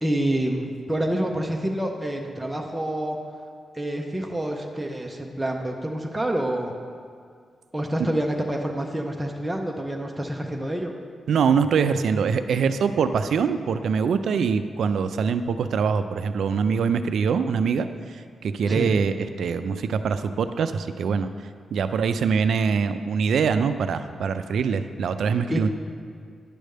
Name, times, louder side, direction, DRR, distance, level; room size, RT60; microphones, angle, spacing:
voice 1, 0.0-3.2 3.7-6.7 7.7-10.9 18.7-18.9 21.8-21.9 25.5-25.6, right 1 dB, 5° right, 0 dB, 0.5 m, -27 dB
voice 2, 11.3-21.3 21.7-25.7, right 6 dB, 70° right, 10 dB, 0.3 m, -23 dB
9.9 x 3.4 x 6.4 m, 2.1 s
wide cardioid pair, 155°, 0 cm